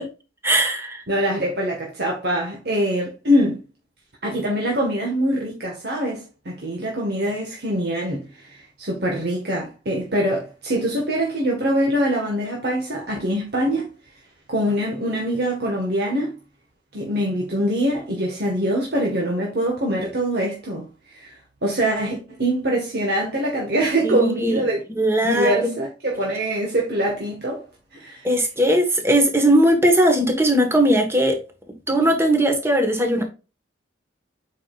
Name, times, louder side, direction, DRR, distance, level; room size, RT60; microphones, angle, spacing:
voice 1, 0.4-1.0 24.0-24.6 24.9-25.7 28.2-31.4 31.9-33.2, right 1 dB, 15° right, 1.5 m, -19 dB
voice 2, 1.1-3.6 4.2-13.9 14.5-16.3 16.9-24.8 25.2-27.6 27.9-28.3, right 1 dB, 55° right, 1.7 m, -24 dB
8.2 x 4.9 x 2.5 m
head